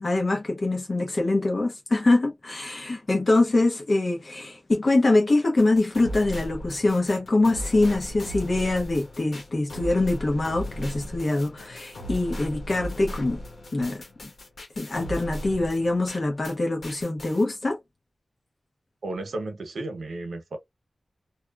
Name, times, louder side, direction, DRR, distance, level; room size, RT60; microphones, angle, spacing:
voice 1, 0.0-13.4 13.7-14.3 14.8-17.8, left 2 dB, 50° left, 0.8 m, -24 dB
sound 1, 5.6-16.6 16.8-17.4, equal, 70° left, 1.1 m, -37 dB
voice 2, 19.0-20.6, right 2 dB, 85° right, 0.7 m, -33 dB
2.8 x 2.3 x 2.3 m
wide cardioid pair, 75°, 0 cm